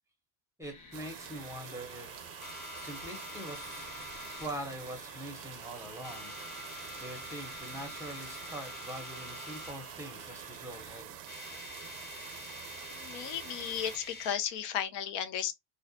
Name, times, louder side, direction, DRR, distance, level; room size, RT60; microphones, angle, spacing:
sound 1, 0.6-11.0, left 3 dB, 50° left, 1.0 m, -53 dB
voice 1, 0.6-2.3 2.7-3.9 4.4-6.3 7.0-11.2, right 1 dB, 5° right, 0.6 m, -43 dB
sound 2, 0.9-14.0, right 11 dB, 70° right, 0.6 m, -47 dB
sound 3, 2.4-4.5 5.2-5.6 5.9-9.8 10.9-11.0 11.1-14.5, left 2 dB, 20° left, 0.9 m, -46 dB
voice 2, 12.9-15.6, left 9 dB, 65° left, 0.5 m, -34 dB
2.3 x 2.1 x 2.6 m
cardioid pair, 135°, 47 cm